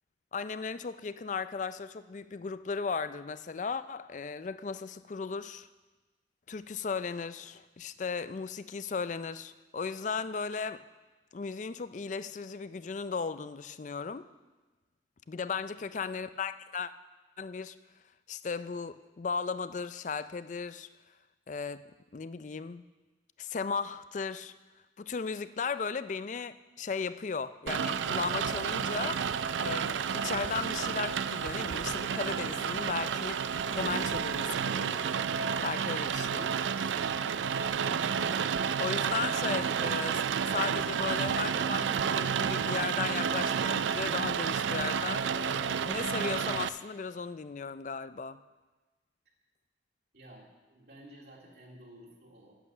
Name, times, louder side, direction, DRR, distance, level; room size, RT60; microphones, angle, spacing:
voice 1, 0.3-5.7 6.5-10.8 11.3-14.3 15.3-16.9 17.4-17.8 18.3-20.9 21.5-21.9 22.1-22.8 23.4-24.5 25.0-29.2 29.6-33.4 33.7-35.0 35.6-36.5 37.9-38.4 38.8-48.4, left 5 dB, 40° left, 14 dB, 0.4 m, -36 dB
voice 2, 15.8-16.1 49.3-49.4 50.1-52.6, right 1 dB, 60° right, -3 dB, 2.2 m, -54 dB
Rain, 27.7-46.7, right 7 dB, 85° right, 0.4 m, -31 dB
10.0 x 8.8 x 6.8 m, 1.2 s
head